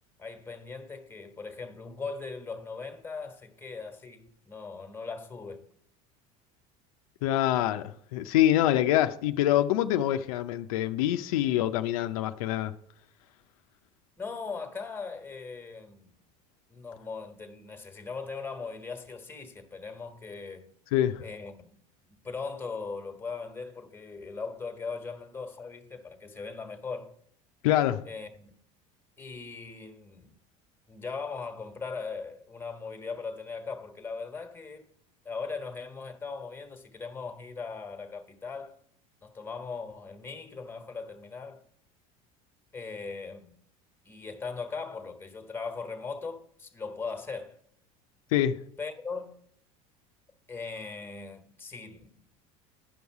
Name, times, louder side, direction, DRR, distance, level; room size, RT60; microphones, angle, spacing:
voice 1, 0.2-5.7 14.2-16.1 16.7-20.7 21.2-21.7 22.1-27.1 28.1-28.5 29.2-30.4 30.9-34.9 35.2-38.8 39.2-41.6 42.7-43.5 44.0-47.6 48.8-49.4 50.5-52.2, left 4 dB, 15° left, 1.3 m, -39 dB
voice 2, 7.2-12.7 20.9-21.2 27.6-28.0 48.3-48.6, left 12 dB, 90° left, 0.5 m, -25 dB
10.0 x 5.5 x 4.7 m
supercardioid pair, 105°, 18 cm